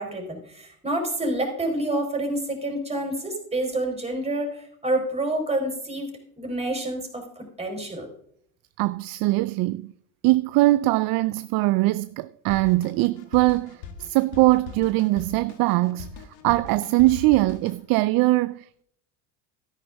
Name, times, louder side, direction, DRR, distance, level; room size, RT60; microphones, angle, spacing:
voice 1, 0.0-8.1, right 1 dB, 15° right, 4.3 m, -28 dB
voice 2, 8.8-9.9 10.2-18.8, right 19 dB, 50° right, 0.5 m, -22 dB
Drum kit, 12.5-17.8, left 6 dB, 80° left, 2.0 m, -41 dB
13.0 x 10.5 x 3.5 m
supercardioid pair, 95°, 48 cm